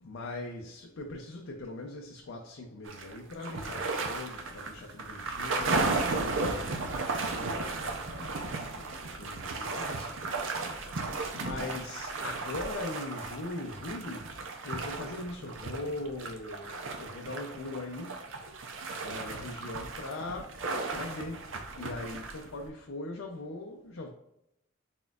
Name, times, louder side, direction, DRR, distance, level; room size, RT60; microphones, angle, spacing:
voice 1, 0.0-10.9 11.3-14.3 14.6-18.2 19.0-20.6 20.9-21.4 21.8-24.1, left 2 dB, 80° left, 0.5 m, -41 dB
sound 1, 2.8-22.7, right 3 dB, 75° right, 0.6 m, -35 dB
4.2 x 3.7 x 2.3 m
head